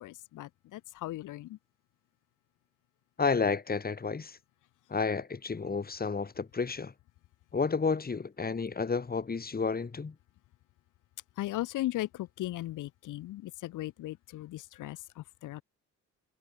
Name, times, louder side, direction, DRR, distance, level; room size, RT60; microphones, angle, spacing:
voice 1, 0.0-1.6 11.4-15.6, left 16 dB, 90° left, 4.3 m, -37 dB
voice 2, 3.2-4.4 4.9-6.9 7.5-10.1, left 4 dB, 30° left, 4.5 m, -31 dB
cardioid pair, 90°, 30 cm